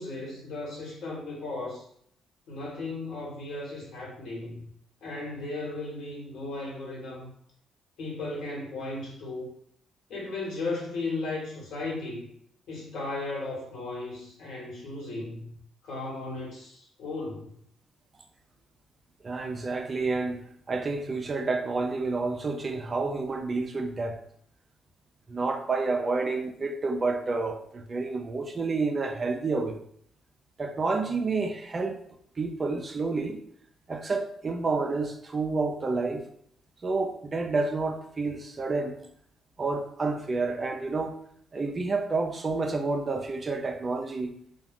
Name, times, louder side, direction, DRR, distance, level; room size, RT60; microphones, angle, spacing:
voice 1, 0.0-1.8 2.5-4.7 5.0-7.3 8.0-9.5 10.1-12.3 12.7-15.6 15.8-17.5, left 2 dB, 70° left, -4 dB, 1.2 m, -36 dB
voice 2, 19.2-20.4 20.7-24.2 25.3-29.8 30.6-32.0 32.4-33.4 33.9-36.2 36.8-39.0 39.6-41.2 41.5-44.3, right 3 dB, 35° right, 5 dB, 0.4 m, -29 dB
2.3 x 2.2 x 3.4 m, 0.67 s
cardioid pair, 90°, 0 cm